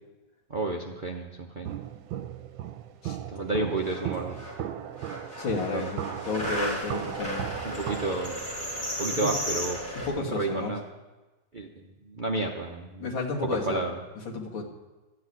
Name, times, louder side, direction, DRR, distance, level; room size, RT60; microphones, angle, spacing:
voice 1, 0.5-1.8 3.3-4.4 5.7-5.9 7.6-8.5 9.0-9.8 10.2-10.8 11.5-13.1 13.5-14.0, right 3 dB, 50° right, 1 dB, 0.6 m, -31 dB
Walk footsteps, 1.6-8.3, right 10 dB, 85° right, 1.4 m, -37 dB
sound 1, 3.5-3.6 3.8-4.6 4.9-10.1, equal, 45° left, 5.1 m, -34 dB
voice 2, 5.4-7.5 9.1-9.4 10.0-10.7 13.0-13.9 14.3-14.6, left 3 dB, 85° left, -1 dB, 2.7 m, -32 dB
13.5 x 6.8 x 9.6 m, 1.2 s
omnidirectional pair, 2.1 m